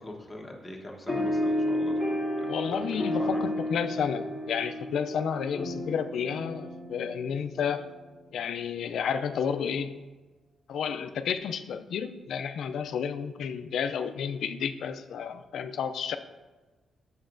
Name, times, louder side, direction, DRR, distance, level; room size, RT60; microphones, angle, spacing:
voice 1, 0.0-1.9 2.4-3.4, left 1 dB, 10° left, -1 dB, 1.1 m, -42 dB
sound 1, 1.1-8.0, left 1 dB, 30° right, 1.4 m, -32 dB
voice 2, 2.5-7.8 8.3-10.0 10.7-16.2, left 7 dB, 75° left, 10 dB, 0.3 m, -31 dB
9.2 x 6.9 x 2.6 m, 1.2 s
cardioid pair, 130°, 0 cm